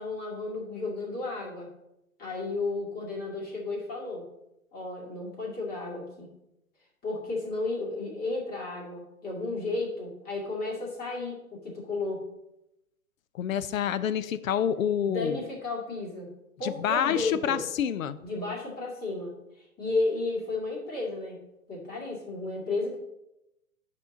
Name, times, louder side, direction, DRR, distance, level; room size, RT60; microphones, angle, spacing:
voice 1, 0.0-1.7 2.2-4.2 4.7-6.3 7.0-12.2 15.1-16.3 16.6-17.6 18.2-19.3 19.6-21.4 21.7-22.9, left 2 dB, 20° left, -3 dB, 2.4 m, -33 dB
voice 2, 13.3-15.4 16.6-18.2, left 9 dB, 65° left, 14 dB, 0.6 m, -28 dB
9.2 x 5.6 x 3.8 m, 0.89 s
hypercardioid pair, 120°, 44 cm